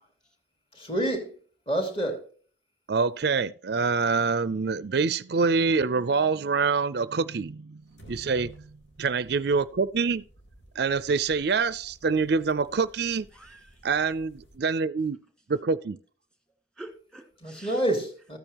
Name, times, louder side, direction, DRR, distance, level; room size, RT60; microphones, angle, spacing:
voice 1, 0.7-1.3 1.7-2.2 17.4-18.4, right 1 dB, 30° left, 2.9 m, -28 dB
voice 2, 2.9-7.8 8.1-8.6 9.0-10.2 10.8-13.3 13.8-15.2 15.5-16.0, right 4 dB, 55° right, 0.4 m, -25 dB
sound 1, 7.8-14.6, equal, 70° left, 2.7 m, -54 dB
voice 3, 13.3-13.9 16.8-17.8, right 2 dB, 5° left, 2.1 m, -48 dB
14.0 x 8.8 x 3.0 m
head